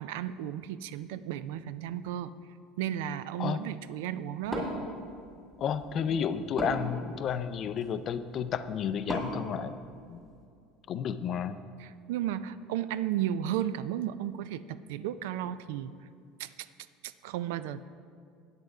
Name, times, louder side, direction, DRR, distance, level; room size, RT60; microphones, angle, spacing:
voice 1, 0.0-2.3 2.8-4.7 11.8-15.9 16.4-16.7 17.0-17.8, right 11 dB, 90° right, 14 dB, 0.3 m, -34 dB
Wood, 4.4-10.5, equal, 10° right, 2.0 m, -40 dB
voice 2, 5.6-9.8 10.1-10.2 10.9-11.6, left 7 dB, 35° left, 12 dB, 0.4 m, -32 dB
9.0 x 7.8 x 4.8 m, 2.4 s
cardioid pair, 165°, 0 cm